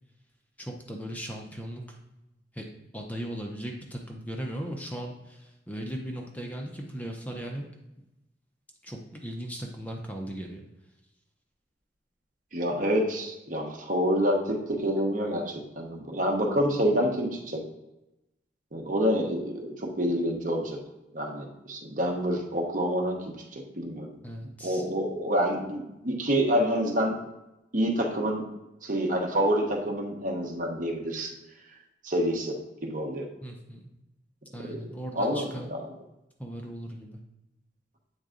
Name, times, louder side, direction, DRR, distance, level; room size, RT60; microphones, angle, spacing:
voice 1, 0.6-2.0 2.5-2.7 2.9-7.7 8.8-10.6 24.2-24.9 33.4-33.9 34.5-35.7 36.4-37.2, equal, 10° left, 1 dB, 0.6 m, -37 dB
voice 2, 12.5-17.6 18.7-20.8 21.1-24.1 24.6-27.2 27.7-28.4 28.8-31.3 32.0-32.6 32.8-33.3 34.6-34.7 35.1-35.4 35.7-35.8, equal, 45° right, 1 dB, 1.1 m, -27 dB
8.0 x 3.9 x 3.8 m, 0.94 s
head